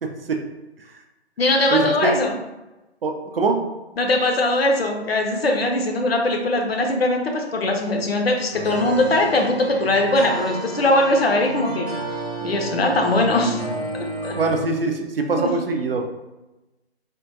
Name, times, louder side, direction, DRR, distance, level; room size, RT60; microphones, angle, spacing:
voice 1, 0.0-0.4 1.7-2.2 3.0-3.6 14.3-16.2, right 4 dB, 60° right, 3 dB, 0.5 m, -23 dB
voice 2, 1.4-2.3 4.0-11.9 12.4-13.6 14.2-14.3 15.4-15.5, left 2 dB, 60° left, 2 dB, 0.7 m, -20 dB
sound 1, 8.5-14.6, right 2 dB, 15° left, 0.5 m, -31 dB
3.6 x 2.3 x 2.7 m, 1.0 s
figure-of-eight pair, 145°, 34 cm